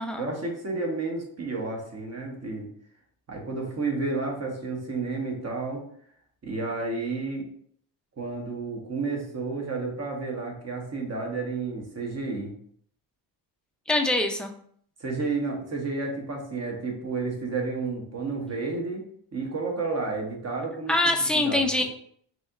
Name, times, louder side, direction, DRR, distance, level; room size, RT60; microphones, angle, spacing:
voice 1, 0.2-2.7 3.3-5.8 6.4-7.4 8.2-12.5 15.0-19.1 19.3-20.9 21.3-21.8, right 3 dB, 35° right, 1 dB, 1.0 m, -31 dB
voice 2, 13.9-14.5 20.9-21.8, left 1 dB, ahead, 3 dB, 0.4 m, -24 dB
4.0 x 2.8 x 2.5 m, 0.62 s
cardioid pair, 85°, 45 cm